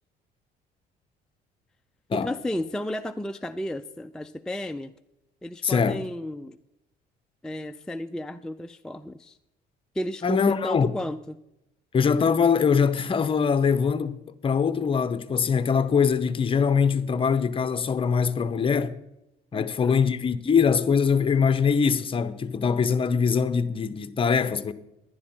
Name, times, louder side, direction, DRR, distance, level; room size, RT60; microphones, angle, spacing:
voice 1, 2.1-4.9 5.4-6.6 7.4-9.4 9.9-11.4 19.5-20.0, left 1 dB, 5° left, 0.3 m, -33 dB
voice 2, 5.6-6.0 10.2-10.9 11.9-14.2 14.4-19.0 19.5-24.7, left 6 dB, 30° left, 0.7 m, -23 dB
11.0 x 11.0 x 4.4 m
cardioid pair, 110°, 17 cm